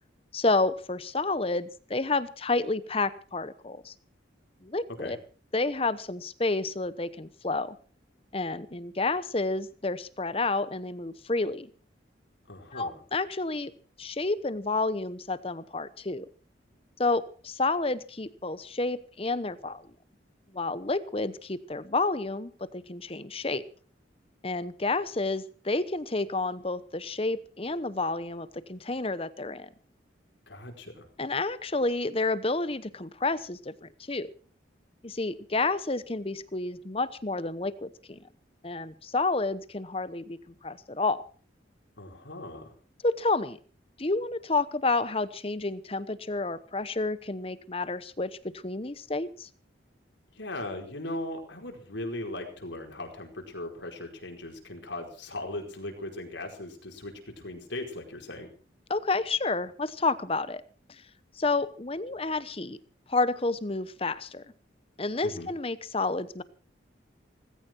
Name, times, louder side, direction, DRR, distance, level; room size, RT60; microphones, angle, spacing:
voice 1, 0.3-3.9 4.6-5.2 5.5-7.8 8.3-11.7 12.7-13.7 14.0-16.3 17.0-19.8 20.5-23.6 24.4-29.7 31.2-34.3 35.0-38.2 38.6-40.4 40.6-41.2 43.0-43.6 44.0-48.3 48.6-49.5 58.9-60.6 61.4-62.8 63.1-64.4 65.0-66.4, left 3 dB, 30° left, 15 dB, 0.9 m, -30 dB
voice 2, 12.5-12.9 30.5-31.0 42.0-42.6 50.4-58.5 65.2-65.5, left 1 dB, 75° left, 3 dB, 4.8 m, -38 dB
18.5 x 16.0 x 4.5 m, 0.40 s
head